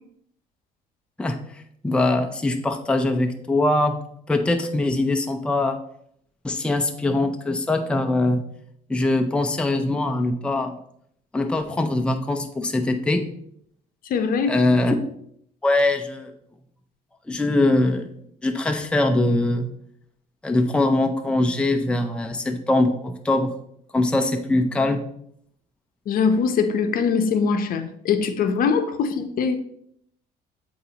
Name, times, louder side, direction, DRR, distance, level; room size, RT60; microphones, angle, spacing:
voice 1, 1.8-4.0 4.3-5.8 6.4-8.4 8.9-10.7 11.3-13.3 14.5-14.9 15.6-16.3 17.3-18.1 18.4-19.7 20.4-23.5 23.9-25.1, left 2 dB, 5° left, 5 dB, 0.5 m, -22 dB
voice 2, 14.0-14.6 26.1-29.6, left 5 dB, 60° left, 8 dB, 0.7 m, -22 dB
8.5 x 3.9 x 2.9 m, 0.70 s
cardioid pair, 110°, 17 cm